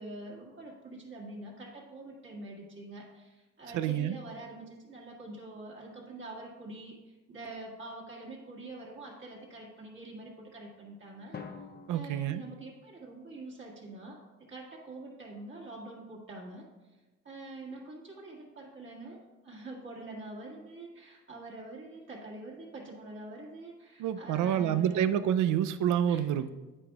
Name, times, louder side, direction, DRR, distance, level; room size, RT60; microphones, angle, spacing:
voice 1, 0.0-11.4 11.9-14.2 14.5-16.6 17.2-19.2 19.4-25.0 26.1-26.2, right 2 dB, 40° right, -4 dB, 1.7 m, -45 dB
voice 2, 3.7-4.2 11.9-12.4 24.0-26.5, right 10 dB, 80° right, 12 dB, 0.5 m, -28 dB
Drum, 11.3-13.4, left 5 dB, 35° left, 0.7 m, -48 dB
8.7 x 8.6 x 2.4 m, 1.2 s
cardioid pair, 90°, 30 cm